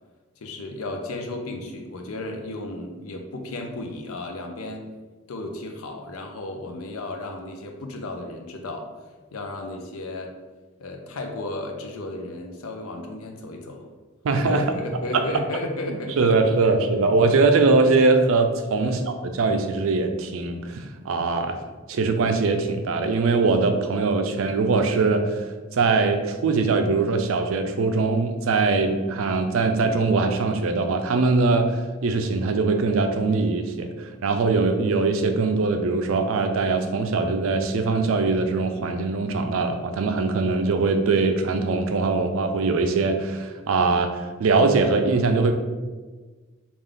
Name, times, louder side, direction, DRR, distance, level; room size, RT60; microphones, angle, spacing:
voice 1, 0.4-4.8 5.3-8.9 9.3-10.3 10.8-13.8 14.4-16.8 17.0-17.2 18.8-19.1, left 2 dB, 85° left, 3 dB, 0.5 m, -34 dB
voice 2, 14.2-14.7 15.1-15.2 15.9-21.6 21.9-25.4 25.7-45.5, right 3 dB, 70° right, 7 dB, 0.4 m, -22 dB
3.4 x 2.4 x 3.6 m, 1.3 s
head